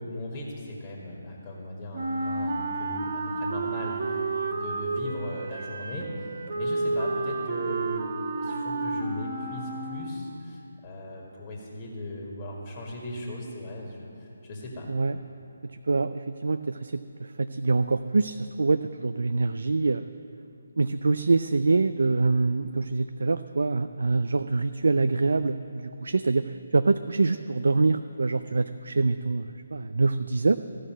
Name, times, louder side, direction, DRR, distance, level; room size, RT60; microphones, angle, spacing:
voice 1, 0.0-6.1 6.5-8.1 8.4-14.9, left 1 dB, 25° left, -1 dB, 1.8 m, -38 dB
Wind instrument woodwind instrument, 1.9-10.2, right 3 dB, 45° right, 1.1 m, -31 dB
voice 2, 15.7-20.0 20.8-30.6, right 3 dB, 65° right, 10 dB, 0.3 m, -25 dB
14.0 x 6.4 x 9.0 m, 2.8 s
figure-of-eight pair, 145°, 0 cm